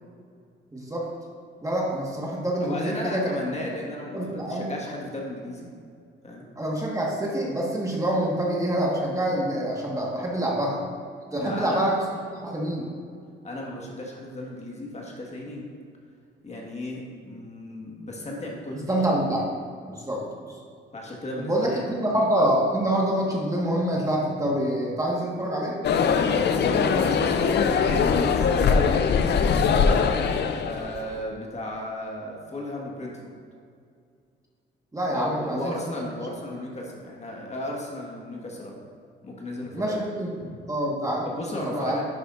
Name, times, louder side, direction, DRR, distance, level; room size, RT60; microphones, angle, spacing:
voice 1, 0.7-1.1 1.6-3.2 4.1-4.8 6.6-10.8 11.3-11.9 12.3-12.9 18.9-19.5 19.9-20.5 21.4-25.8 34.9-35.7 39.7-40.3 40.7-41.3 41.7-42.0, right 1 dB, 15° right, -3 dB, 1.5 m, -26 dB
voice 2, 2.6-5.7 6.2-6.5 11.4-11.9 13.4-15.6 16.4-19.1 20.9-22.2 26.8-29.2 30.6-33.4 35.1-38.8 39.2-40.0 41.2-42.0, left 1 dB, 35° left, -1 dB, 1.6 m, -35 dB
sound 1, 25.8-31.1, left 6 dB, 60° left, 0.5 m, -22 dB
10.5 x 6.7 x 2.6 m, 2.3 s
cardioid pair, 90°, 20 cm